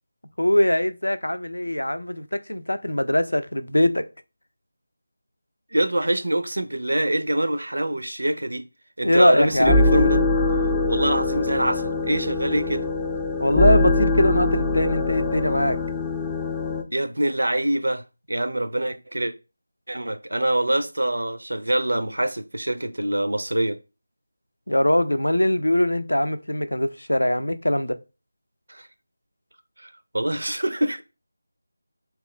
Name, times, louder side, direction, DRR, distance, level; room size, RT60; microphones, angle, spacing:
voice 1, 0.4-4.1 9.0-9.8 13.4-15.8 24.7-28.0, left 1 dB, 90° left, 0.4 m, -21 dB
voice 2, 5.7-8.6 9.0-10.3 10.9-12.9 16.9-18.0 18.3-19.3 19.9-23.8 28.7-28.9 29.8-31.0, right 1 dB, 80° right, 0.5 m, -24 dB
sound 1, 9.4-16.8, left 2 dB, 10° left, 0.3 m, -23 dB
2.9 x 2.3 x 3.1 m
figure-of-eight pair, 165°, 0 cm